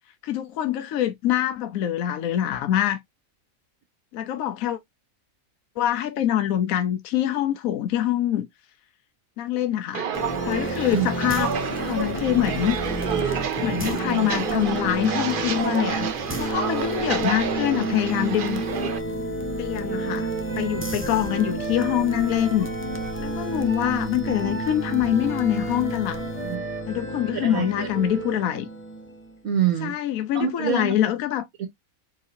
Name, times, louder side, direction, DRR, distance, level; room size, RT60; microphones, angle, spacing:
voice 1, 0.2-3.0 4.1-4.8 5.8-8.5 9.4-10.1 10.5-11.5 11.9-12.8 13.2-16.1 16.4-18.6 19.6-20.3 20.6-22.7 23.2-26.2 26.9-28.7 29.8-31.5, left 11 dB, 80° left, 1.1 m, -25 dB
Walk footsteps, 9.9-19.0, right 7 dB, 50° right, 0.7 m, -29 dB
sound 1, 10.1-29.3, right 1 dB, 15° left, 0.4 m, -31 dB
Wind instrument woodwind instrument, 19.9-28.4, right 4 dB, 30° right, 1.0 m, -37 dB
voice 2, 27.3-27.9 29.4-29.9 30.3-30.9 31.6-31.7, right 8 dB, 75° right, 1.4 m, -25 dB
4.6 x 2.6 x 4.2 m
omnidirectional pair, 1.5 m